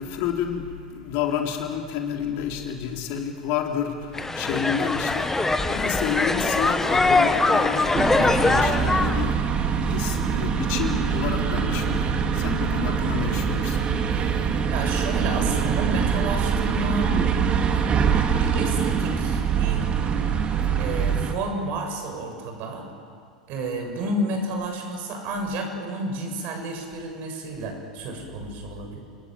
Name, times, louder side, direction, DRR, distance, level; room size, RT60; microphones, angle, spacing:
voice 1, 0.0-14.6, left 8 dB, 50° left, 2 dB, 3.7 m, -30 dB
sound 1, 4.1-9.2, left 2 dB, 10° left, 1.6 m, -22 dB
sound 2, 7.9-21.3, right 6 dB, 30° right, 2.5 m, -24 dB
voice 2, 14.7-17.1 17.7-17.8 18.4-19.8 20.8-22.9 23.5-29.0, right 2 dB, 50° right, 3 dB, 7.2 m, -31 dB
29.0 x 20.5 x 9.2 m, 2.1 s
figure-of-eight pair, 85°, 4 cm